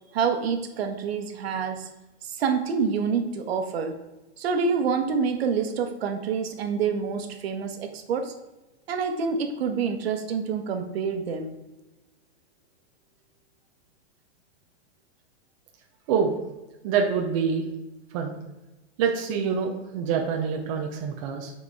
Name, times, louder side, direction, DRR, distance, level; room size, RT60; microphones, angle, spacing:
voice 1, 0.1-1.9 2.2-4.0 4.4-8.3 8.9-11.6, right 5 dB, 60° right, 5 dB, 1.3 m, -27 dB
voice 2, 16.1-16.4 16.8-17.6 18.1-18.3 19.0-21.5, right 6 dB, 30° right, 1 dB, 0.7 m, -26 dB
7.8 x 4.6 x 4.7 m, 1.0 s
supercardioid pair, 165°, 35 cm